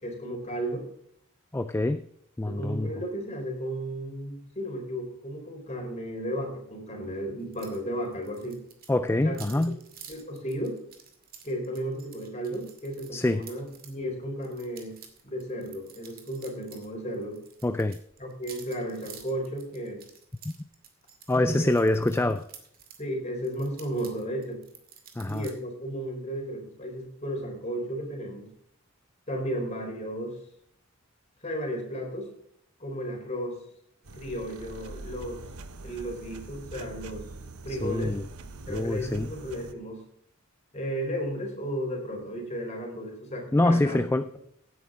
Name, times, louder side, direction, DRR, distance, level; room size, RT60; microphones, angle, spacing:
voice 1, 0.0-0.8 2.5-8.6 9.2-9.7 10.1-10.8 11.4-15.0 15.2-17.4 18.2-20.0 21.5-21.7 22.2-22.3 23.0-24.6 25.3-28.5 29.3-30.4 31.4-32.3 32.8-33.6 34.1-35.4 35.8-37.3 37.6-38.2 38.7-40.0 40.7-44.0, equal, 30° left, 0 dB, 3.9 m, -34 dB
voice 2, 1.5-2.1 2.4-2.9 8.9-9.8 13.1-13.5 17.6-18.0 20.4-20.5 21.3-22.4 25.2-25.5 37.7-38.3 38.7-39.3 43.5-44.4, left 1 dB, 10° left, 10 dB, 0.3 m, -25 dB
sound 1, 7.5-13.9 14.4-16.9 17.1-23.0 23.4-25.5, right 7 dB, 40° right, 2.3 m, -50 dB
sound 2, 34.0-39.7, right 3 dB, 80° right, 1.1 m, -43 dB
17.0 x 9.3 x 3.7 m, 0.72 s
head